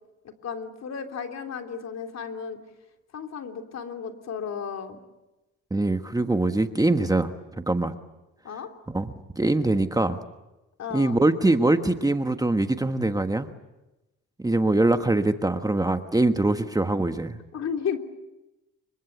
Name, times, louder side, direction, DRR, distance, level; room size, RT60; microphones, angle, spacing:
voice 1, 0.4-2.6 3.1-5.0 8.4-8.7 10.8-11.2 17.5-18.0, left 7 dB, 60° left, 4 dB, 3.4 m, -33 dB
voice 2, 5.7-7.3 7.7-7.9 8.9-10.2 10.9-13.5 14.4-17.4, right 2 dB, 10° right, 8 dB, 1.3 m, -23 dB
27.5 x 24.0 x 8.2 m, 1.0 s
cardioid pair, 90°, 30 cm